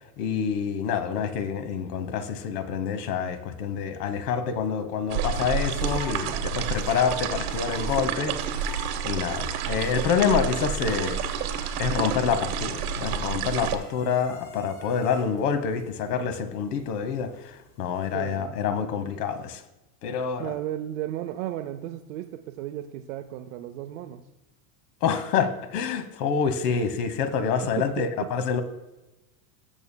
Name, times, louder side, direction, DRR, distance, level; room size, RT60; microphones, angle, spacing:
voice 1, 0.2-8.6 9.0-11.2 11.8-19.6 20.0-20.5 25.0-28.6, left 6 dB, 80° left, 11 dB, 1.2 m, -27 dB
sound 1, 5.1-13.8, right 7 dB, 75° right, 1.2 m, -29 dB
sound 2, 5.7-10.2 10.5-18.2, left 4 dB, 30° left, 2.2 m, -47 dB
voice 2, 18.1-18.5 20.4-24.2 27.8-28.1, right 12 dB, 55° right, 4 dB, 0.6 m, -34 dB
18.5 x 7.1 x 2.2 m, 1.0 s
supercardioid pair, 175°, 46 cm